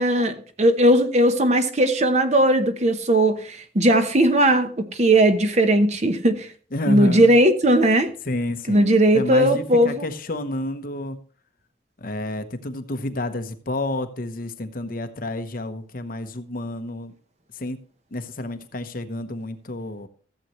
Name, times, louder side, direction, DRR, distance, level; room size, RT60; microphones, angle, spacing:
voice 1, 0.0-6.5 6.9-8.1 8.7-10.0, right 1 dB, 40° right, 0.9 m, -18 dB
voice 2, 6.7-7.3 8.3-11.2 12.0-17.1 17.5-17.8 18.1-20.1, left 1 dB, 50° left, 0.9 m, -30 dB
14.5 x 7.7 x 3.1 m
head